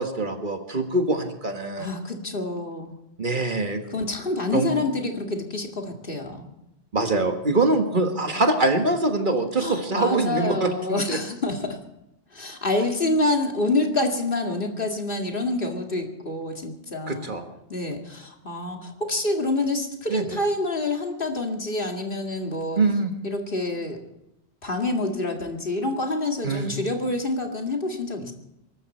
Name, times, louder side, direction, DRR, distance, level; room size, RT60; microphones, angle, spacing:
voice 1, 0.0-1.9 3.2-3.8 4.5-4.8 6.9-11.2 17.1-17.4 20.1-20.2 22.8-23.1 26.4-26.7, right 2 dB, 45° right, 5 dB, 1.8 m, -24 dB
voice 2, 1.8-3.0 3.9-6.5 9.6-11.8 12.3-17.3 17.7-22.8 23.2-24.0 24.6-28.3, left 2 dB, 50° left, 3 dB, 2.4 m, -27 dB
23.0 x 13.0 x 4.4 m, 0.86 s
omnidirectional pair, 1.1 m